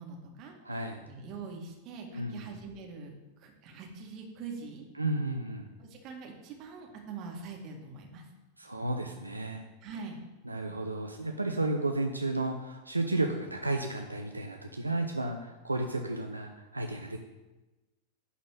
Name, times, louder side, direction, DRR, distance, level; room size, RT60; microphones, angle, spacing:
voice 1, 0.0-3.1 3.4-4.9 5.8-8.3 9.8-10.2, right 4 dB, 40° right, 1 dB, 2.0 m, -44 dB
voice 2, 0.6-1.0 2.1-2.4 5.0-5.7 8.6-9.6 10.4-17.2, right 2 dB, 85° right, 3 dB, 0.7 m, -33 dB
11.0 x 4.1 x 7.5 m, 1.1 s
figure-of-eight pair, 90°, 0 cm